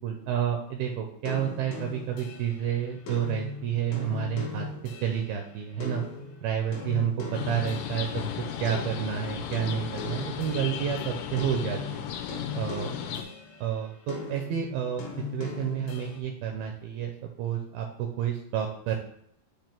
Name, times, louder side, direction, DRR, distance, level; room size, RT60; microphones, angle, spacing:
voice 1, 0.0-4.7 5.0-6.0 6.4-12.1 12.5-12.9 13.6-15.0 15.3-19.0, right 9 dB, 80° right, 3 dB, 2.2 m, -30 dB
sound 1, 1.3-8.4 8.7-11.0 11.4-13.7 14.1-16.2, left 5 dB, 65° left, 2.2 m, -39 dB
sound 2, 7.3-13.2, left 9 dB, 85° left, 2.5 m, -35 dB
7.2 x 2.9 x 5.8 m, 0.71 s
omnidirectional pair, 4.8 m